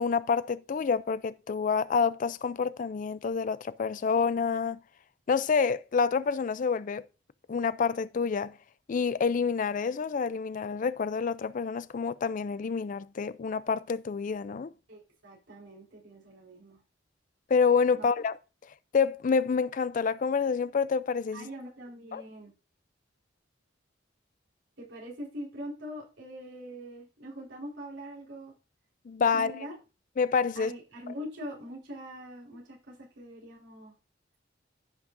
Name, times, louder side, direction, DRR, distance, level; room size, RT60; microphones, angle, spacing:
voice 1, 0.0-4.8 5.3-7.0 7.5-8.5 8.9-14.7 17.5-18.4 18.9-21.5 22.1-22.2 29.1-29.5 30.2-30.7, left 5 dB, 45° left, 0.4 m, -28 dB
voice 2, 14.9-16.8 17.9-18.1 21.3-22.5 24.8-28.5 29.3-29.7 30.5-33.9, equal, 85° right, 4.3 m, -43 dB
15.0 x 6.2 x 2.6 m
head